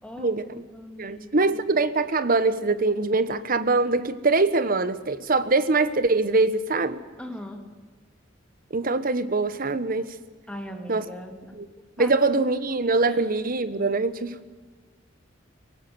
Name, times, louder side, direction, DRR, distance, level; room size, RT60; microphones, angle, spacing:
voice 1, 0.0-1.5 7.2-7.6 10.5-11.5 12.0-12.4 13.1-13.2, equal, 5° left, 4 dB, 2.5 m, -39 dB
voice 2, 1.0-7.0 8.7-10.1 10.9-11.1 11.6-11.7 12.0-14.3, right 3 dB, 50° right, 13 dB, 1.1 m, -23 dB
23.5 x 19.0 x 7.8 m, 1.4 s
head